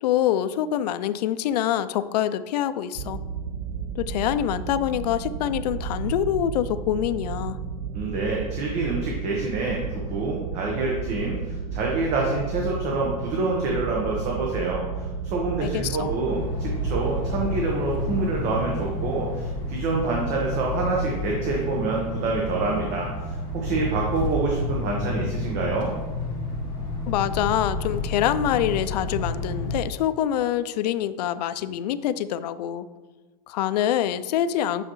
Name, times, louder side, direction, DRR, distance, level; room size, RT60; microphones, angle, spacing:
voice 1, 0.0-3.2 3.9-7.6 15.6-16.1 27.1-32.9 33.5-34.9, left 11 dB, 85° left, 14 dB, 0.4 m, -25 dB
sound 1, 3.0-17.6, right 5 dB, 65° right, 0.5 m, -33 dB
voice 2, 7.9-14.8 15.2-25.9, right 3 dB, 35° right, -1 dB, 1.2 m, -27 dB
sound 2, 16.2-29.8, left 1 dB, 25° left, 1.7 m, -30 dB
8.8 x 6.3 x 3.1 m, 1.3 s
supercardioid pair, 170°, 20 cm